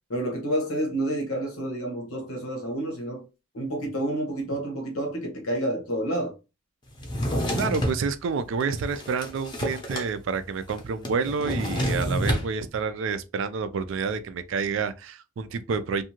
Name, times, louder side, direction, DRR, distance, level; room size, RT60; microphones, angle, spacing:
voice 1, 0.1-3.2 3.5-6.3, right 1 dB, 90° left, 1.0 m, -29 dB
Drawer open or close, 7.0-8.0 8.6-10.1 10.4-10.5 10.7-12.5, equal, 20° left, 0.6 m, -28 dB
voice 2, 7.5-16.0, right 5 dB, 65° right, 0.3 m, -29 dB
2.6 x 2.4 x 2.8 m
head